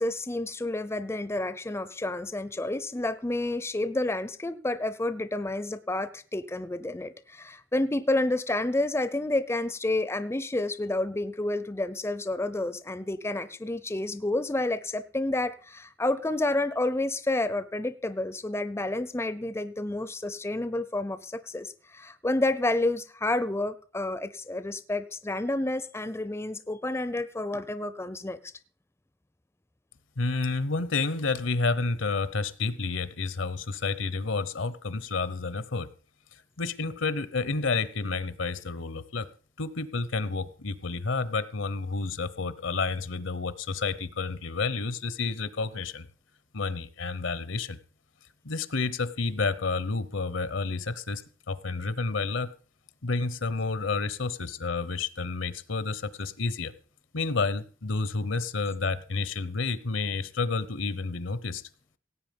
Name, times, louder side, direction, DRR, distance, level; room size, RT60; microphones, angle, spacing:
voice 1, 0.0-28.4, left 2 dB, 15° left, 13 dB, 0.5 m, -30 dB
voice 2, 30.2-35.9 36.3-39.3 39.6-46.1 46.5-47.8 48.4-51.2 51.5-52.5 53.0-56.7 57.1-61.6, left 4 dB, 70° left, 16 dB, 0.9 m, -30 dB
17.5 x 8.4 x 5.3 m, 0.41 s
head